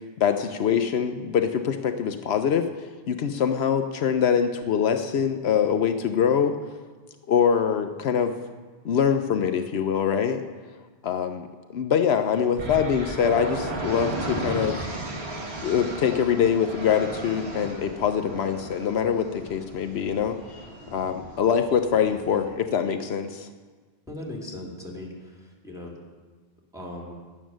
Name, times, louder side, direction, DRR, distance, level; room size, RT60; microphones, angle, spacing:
voice 1, 0.2-2.7 3.1-6.5 7.3-8.3 8.8-10.4 11.0-11.5 11.7-14.8 15.6-20.4 20.9-23.5, left 7 dB, 80° left, 7 dB, 0.9 m, -24 dB
sound 1, 12.6-22.4, right 1 dB, 80° right, 1.9 m, -35 dB
voice 2, 24.1-25.9 26.7-27.1, left 1 dB, 5° right, -3 dB, 2.5 m, -38 dB
11.0 x 9.1 x 6.2 m, 1.4 s
omnidirectional pair, 1.1 m